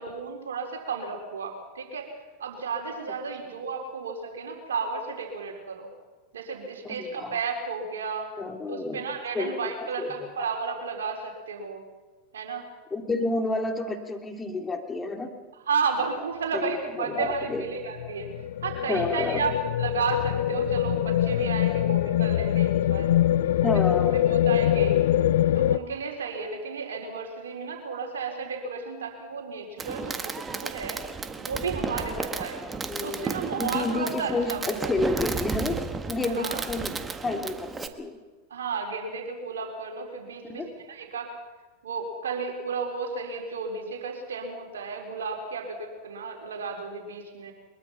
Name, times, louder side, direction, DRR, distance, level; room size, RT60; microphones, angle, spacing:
voice 1, 0.0-2.1 2.4-5.9 6.3-8.3 8.7-11.8 12.3-12.7 15.7-18.3 18.6-23.1 23.6-23.7 24.3-25.0 25.5-31.0 31.4-32.6 33.0-34.9 36.3-36.6 38.5-40.6 40.9-41.3 41.8-47.5, right 5 dB, 80° right, 2 dB, 4.1 m, -33 dB
voice 2, 6.8-7.4 8.4-9.0 9.3-9.7 10.0-10.3 12.9-15.3 16.5-17.6 18.9-19.4 23.6-24.3 32.8-35.7 36.1-36.9 37.2-38.2 40.5-40.7, left 3 dB, 15° left, 5 dB, 3.0 m, -30 dB
sound 1, 17.3-25.8, left 12 dB, 70° left, 0.6 m, -24 dB
Fireworks, 29.8-37.9, right 4 dB, 20° right, 1.6 m, -33 dB
23.0 x 22.0 x 5.8 m, 1.3 s
hypercardioid pair, 90°, 0 cm